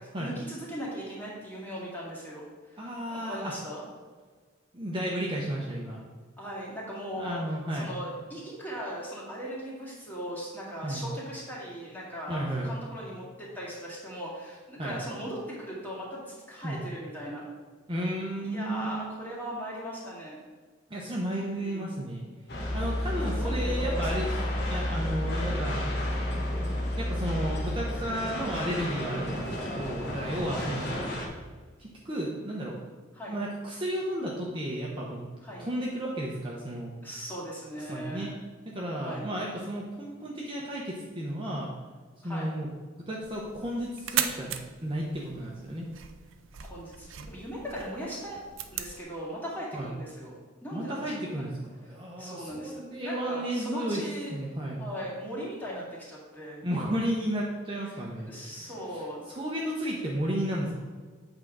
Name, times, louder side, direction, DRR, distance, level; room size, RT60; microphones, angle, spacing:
voice 1, 0.0-3.9 6.4-7.4 7.7-17.5 18.4-20.4 21.6-21.9 22.8-24.6 25.4-25.6 29.3-29.6 30.3-30.7 33.1-33.4 35.4-35.7 37.0-38.3 39.0-39.3 42.2-42.5 46.7-50.3 50.6-51.2 52.2-54.4 54.8-56.6 57.9-58.0 58.2-59.2, equal, 10° left, -5 dB, 2.2 m, -39 dB
voice 2, 2.8-3.5 4.7-6.0 7.2-7.9 10.8-11.0 12.3-12.7 14.8-15.0 16.6-16.8 17.9-19.0 20.9-22.2 22.7-24.3 24.7-25.9 27.0-31.1 31.8-32.9 33.3-35.2 35.6-36.9 37.9-38.3 38.7-41.7 42.2-42.7 43.1-44.6 44.8-45.9 49.7-49.9 50.7-51.5 51.8-54.0 54.3-54.8 56.6-60.7, right 1 dB, 25° right, -4 dB, 0.9 m, -33 dB
sound 1, 22.5-31.3, left 1 dB, 50° left, 1.4 m, -31 dB
sound 2, 43.2-49.0, right 9 dB, 65° right, 0.5 m, -37 dB
8.3 x 3.9 x 6.1 m, 1.5 s
head